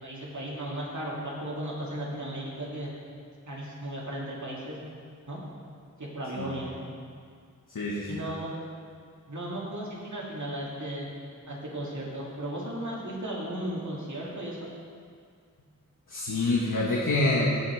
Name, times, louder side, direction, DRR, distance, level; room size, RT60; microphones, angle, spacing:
voice 1, 0.0-2.9 3.5-4.8 5.3-5.4 6.0-6.8 8.1-8.5 9.3-11.1 11.5-14.6, right 1 dB, 65° right, -5 dB, 2.6 m, -35 dB
voice 2, 7.7-8.2 16.1-17.5, left 2 dB, 90° left, -3 dB, 1.2 m, -26 dB
16.5 x 5.8 x 4.7 m, 2.1 s
wide cardioid pair, 50°, 32 cm